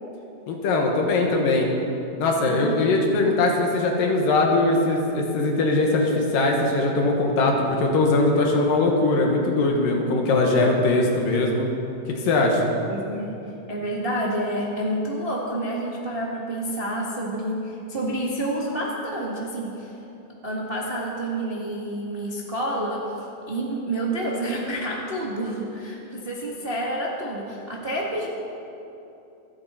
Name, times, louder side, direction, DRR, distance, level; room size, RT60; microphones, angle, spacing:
voice 1, 0.5-1.7 2.2-11.7 12.2-12.6, left 2 dB, 75° left, 1 dB, 3.1 m, -21 dB
voice 2, 2.4-3.3 12.9-13.4 13.7-19.9 20.4-28.3, right 1 dB, 50° right, -4 dB, 0.6 m, -29 dB
27.0 x 9.0 x 4.3 m, 2.9 s
omnidirectional pair, 4.0 m